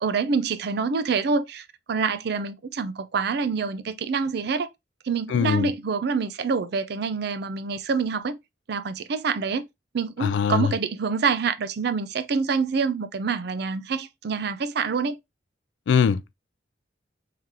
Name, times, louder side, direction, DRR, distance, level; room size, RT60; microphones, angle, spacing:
voice 1, 0.0-4.7 5.0-8.4 8.7-9.6 9.9-15.2, right 5 dB, 65° right, 0.5 m, -26 dB
voice 2, 5.3-5.7 10.2-10.7 15.9-16.3, left 7 dB, 75° left, 0.3 m, -22 dB
3.7 x 3.3 x 2.7 m
head